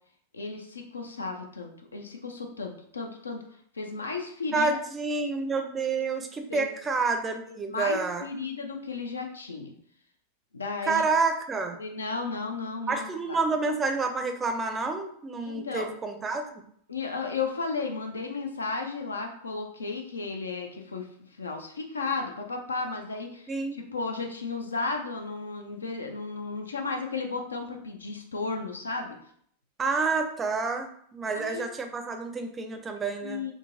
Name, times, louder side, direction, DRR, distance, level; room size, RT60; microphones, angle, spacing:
voice 1, 0.3-3.4 3.7-4.7 6.5-6.7 7.5-9.7 10.5-11.0 11.7-13.4 15.4-15.9 16.9-21.1 21.4-29.2 31.3-31.7 33.2-33.5, left 4 dB, 75° left, 4 dB, 0.5 m, -34 dB
voice 2, 4.5-8.3 10.8-11.8 12.9-16.6 23.5-23.8 29.8-33.4, right 4 dB, 20° right, 5 dB, 0.4 m, -29 dB
3.7 x 2.3 x 2.5 m, 0.65 s
figure-of-eight pair, 90°, 0 cm